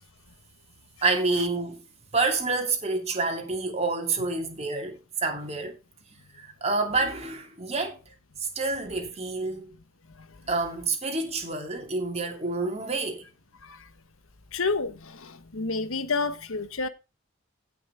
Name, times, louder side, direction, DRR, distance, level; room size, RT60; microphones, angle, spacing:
voice 1, 1.0-1.8 2.1-5.8 6.4-8.0 8.4-9.7 10.5-13.2, right 3 dB, 30° right, 2.7 m, -28 dB
voice 2, 14.5-16.9, left 4 dB, 80° left, 1.2 m, -29 dB
16.5 x 6.0 x 3.4 m
head